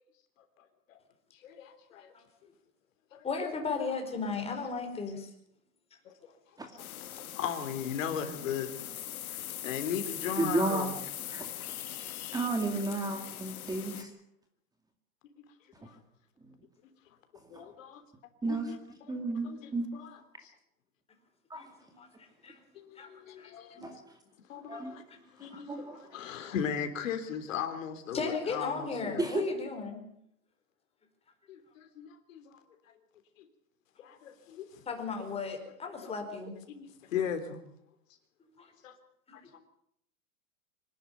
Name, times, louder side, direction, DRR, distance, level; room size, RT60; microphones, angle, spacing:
voice 1, 1.4-2.1 3.1-3.3 6.1-6.2 6.7-6.8 7.1-8.7 9.6-10.9 15.4-15.5 15.8-16.0 17.5-18.0 18.4-18.8 19.1-19.2 19.4-20.5 22.7-23.8 24.5-25.0 25.4-29.2 31.5-32.6 33.4-33.5 34.0-34.8 36.0-36.2 36.7-37.6 38.8-38.9 39.3-39.6, left 8 dB, 65° left, 8 dB, 3.4 m, -37 dB
voice 2, 3.2-5.3 21.5-22.1 22.4-22.5 23.0-23.1 23.4-23.5 23.7-23.8 24.7-24.8 25.5-25.6 28.1-30.0 34.9-36.5, left 4 dB, 15° left, 4 dB, 4.7 m, -35 dB
sound 1, 6.8-14.0, left 11 dB, 80° left, 1.5 m, -41 dB
voice 3, 10.4-10.9 11.3-11.7 12.3-14.1 17.5-17.7 18.4-18.7 19.1-19.5 19.7-19.9 21.5-21.6 23.8-24.0 24.7-24.9 25.4-26.1 29.2-29.4, right 2 dB, 10° right, 5 dB, 2.2 m, -32 dB
25.0 x 11.5 x 9.4 m, 0.75 s
hypercardioid pair, 135°, 42 cm